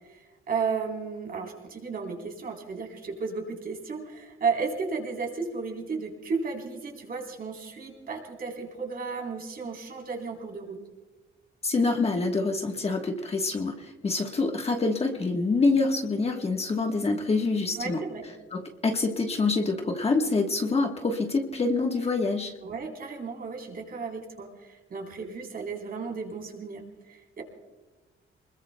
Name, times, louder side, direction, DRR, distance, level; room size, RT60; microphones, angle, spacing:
voice 1, 0.1-10.8 17.8-18.2 22.6-26.8 27.1-27.4, right 5 dB, 45° right, 1 dB, 3.8 m, -34 dB
voice 2, 11.6-18.0 18.5-22.5, left 3 dB, 30° left, 3 dB, 1.3 m, -26 dB
28.5 x 21.0 x 2.2 m, 1.2 s
wide cardioid pair, 165°, 21 cm